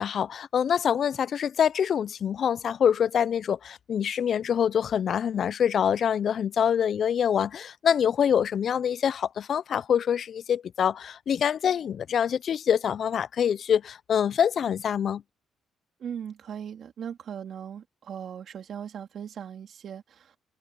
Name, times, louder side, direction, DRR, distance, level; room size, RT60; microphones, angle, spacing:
voice 1, 0.0-15.2, left 8 dB, 60° left, 0.4 m, -25 dB
voice 2, 16.0-20.4, right 8 dB, 60° right, 3.2 m, -39 dB
cardioid pair, 90°, 0 cm